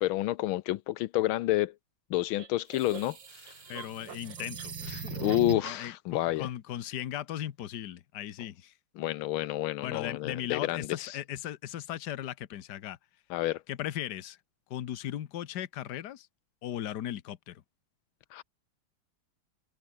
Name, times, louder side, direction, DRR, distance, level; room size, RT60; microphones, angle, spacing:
voice 1, 0.0-1.7 2.1-3.5 5.1-6.5 9.0-11.2 13.3-13.6 18.3-18.4, left 16 dB, 85° left, 1.5 m, -29 dB
sound 1, 2.4-5.9, right 6 dB, 65° right, 2.9 m, -40 dB
voice 2, 3.7-5.2 5.6-8.7 9.8-13.0 13.7-14.4 14.7-16.3 16.6-17.6, left 11 dB, 60° left, 1.5 m, -37 dB
omnidirectional pair, 2.2 m